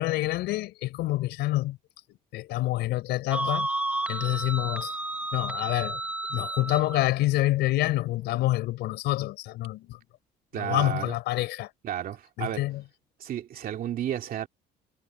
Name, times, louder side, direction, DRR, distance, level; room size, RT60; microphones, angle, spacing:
voice 1, 0.0-1.8 2.3-3.7 4.1-4.9 5.3-6.0 6.3-10.0 10.5-11.7 12.4-12.8, left 17 dB, 85° left, 4.4 m, -27 dB
sound 1, 3.3-7.0, right 2 dB, 10° right, 0.8 m, -31 dB
voice 2, 10.5-11.2 11.8-12.6 13.2-14.5, right 11 dB, 60° right, 2.4 m, -32 dB
cardioid pair, 110°, 17 cm